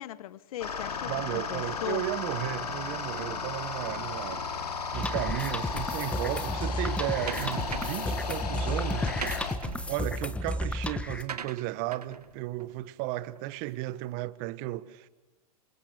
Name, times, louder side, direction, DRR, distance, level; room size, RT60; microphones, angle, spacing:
voice 1, 0.0-2.0, left 12 dB, 65° left, 1.1 m, -38 dB
sound 1, 0.6-9.5, left 5 dB, 90° left, 3.5 m, -35 dB
voice 2, 1.0-4.5 4.9-9.1 9.9-15.1, right 17 dB, 45° right, 1.3 m, -34 dB
sound 2, 4.9-11.2, left 1 dB, 5° left, 1.4 m, -33 dB
sound 3, 7.3-8.1 8.9-13.6, right 7 dB, 90° right, 1.5 m, -41 dB
29.0 x 26.5 x 6.8 m
hypercardioid pair, 115°, 19 cm